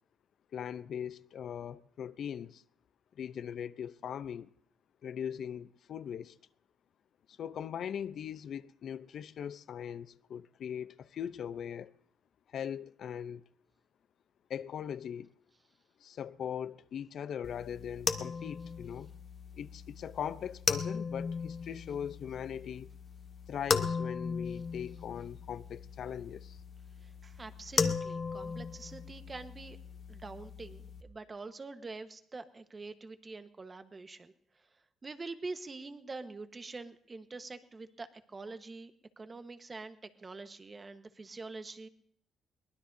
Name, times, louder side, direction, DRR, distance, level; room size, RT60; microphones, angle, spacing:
voice 1, 0.5-2.6 3.2-4.5 5.0-6.4 7.3-11.9 12.5-13.5 14.5-15.3 16.0-19.1 19.6-22.9 23.5-26.6, left 8 dB, 65° left, 0.5 m, -40 dB
sound 1, 17.4-31.0, left 5 dB, 45° left, 1.1 m, -37 dB
voice 2, 27.0-29.8 30.1-34.3 35.0-41.9, right 3 dB, 30° right, 1.2 m, -45 dB
22.5 x 19.0 x 2.7 m
cardioid pair, 90°, 0 cm